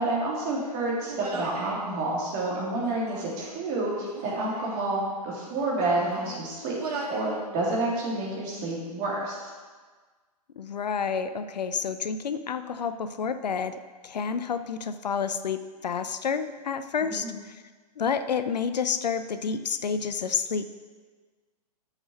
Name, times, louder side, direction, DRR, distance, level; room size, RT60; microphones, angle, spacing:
voice 1, 0.0-6.8 7.1-9.5 17.0-17.3, right 2 dB, 35° right, -4 dB, 3.1 m, -29 dB
Human voice, 1.0-1.8 2.7-3.7 4.1-4.8 5.4-6.4 6.8-7.4 7.7-8.4, right 3 dB, 70° right, 1.9 m, -39 dB
voice 2, 10.6-17.6 18.0-20.6, left 6 dB, 80° left, 11 dB, 0.6 m, -29 dB
6.7 x 6.1 x 6.5 m, 1.4 s
hypercardioid pair, 120°, 21 cm